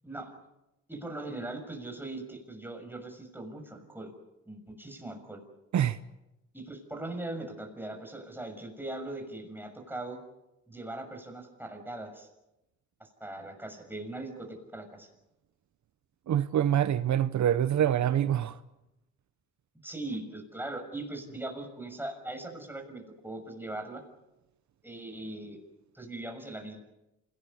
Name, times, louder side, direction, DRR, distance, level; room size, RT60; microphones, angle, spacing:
voice 1, 0.9-4.1 4.5-5.4 6.5-10.2 10.7-12.3 13.0-15.1 19.8-24.0 24.8-25.6 25.9-26.8, right 2 dB, 5° right, 6.4 m, -40 dB
voice 2, 16.3-18.6, right 10 dB, 65° right, 0.8 m, -25 dB
27.0 x 18.5 x 8.6 m
cardioid pair, 95°, 31 cm